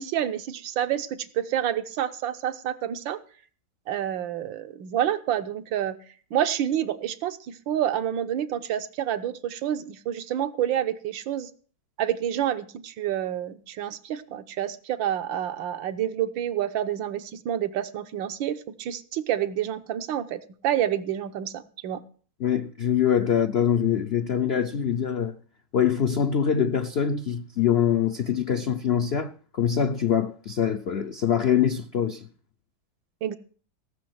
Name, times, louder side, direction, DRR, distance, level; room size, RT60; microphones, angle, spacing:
voice 1, 0.0-3.2 3.9-6.0 6.3-11.5 12.0-22.0 33.2-33.4, right 11 dB, 85° right, 1.6 m, -28 dB
voice 2, 22.4-25.4 25.7-32.3, left 8 dB, 75° left, 0.5 m, -24 dB
17.5 x 6.5 x 7.8 m
omnidirectional pair, 2.1 m